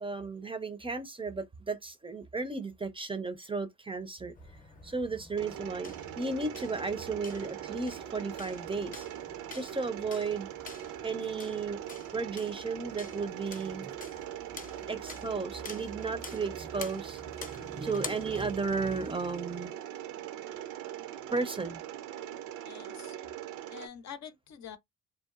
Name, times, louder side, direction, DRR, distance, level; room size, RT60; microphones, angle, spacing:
voice 1, 0.0-4.3 4.8-9.1 9.5-10.5 11.0-11.8 12.1-13.9 14.9-17.2 17.5-19.8 21.3-21.8, right 4 dB, 20° right, 0.4 m, -34 dB
sound 1, 4.4-19.1, left 3 dB, 30° left, 0.6 m, -48 dB
Mechanisms, 5.4-23.9, right 11 dB, 80° right, 0.5 m, -41 dB
voice 2, 22.6-23.2 23.7-24.8, left 8 dB, 65° left, 0.6 m, -46 dB
2.7 x 2.2 x 2.3 m
cardioid pair, 90°, 30 cm